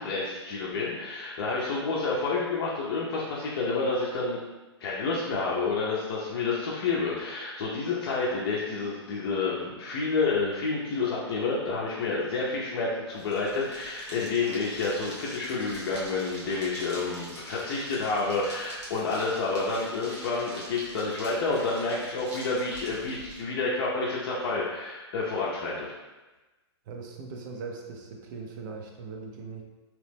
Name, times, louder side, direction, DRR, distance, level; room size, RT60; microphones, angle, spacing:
voice 1, 0.0-4.4 4.8-25.9, left 3 dB, 55° left, -5 dB, 0.6 m, -29 dB
sound 1, 13.1-23.4, equal, 90° right, 1.1 m, -45 dB
voice 2, 26.9-29.6, right 4 dB, 45° right, 1 dB, 0.5 m, -40 dB
2.9 x 2.0 x 3.3 m, 1.2 s
hypercardioid pair, 135°, 14 cm